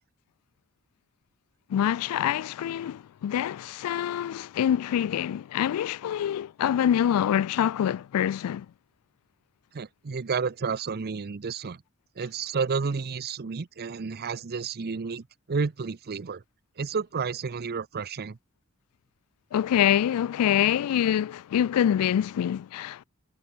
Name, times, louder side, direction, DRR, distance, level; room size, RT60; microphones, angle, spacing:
voice 1, 1.7-8.7 19.5-23.0, left 10 dB, 80° left, 0.3 m, -25 dB
voice 2, 9.7-11.8 12.2-16.4 16.8-18.4, right 5 dB, 45° right, 0.6 m, -31 dB
head